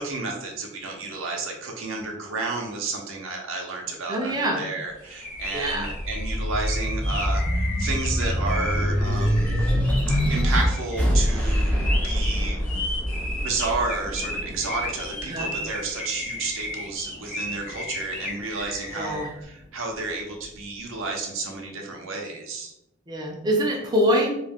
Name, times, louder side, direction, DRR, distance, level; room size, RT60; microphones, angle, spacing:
voice 1, 0.0-9.7 10.1-12.6 13.4-22.7, right 3 dB, 80° right, 1 dB, 0.6 m, -31 dB
voice 2, 4.1-4.6 5.5-5.9 15.2-15.5 19.0-19.3 23.1-24.3, equal, 20° right, -1 dB, 0.4 m, -24 dB
sound 1, 5.0-19.3, left 1 dB, 40° left, 0.7 m, -35 dB
sound 2, 5.4-16.2 16.7-17.8, equal, 10° left, 0.7 m, -25 dB
2.3 x 2.1 x 3.3 m, 0.82 s
head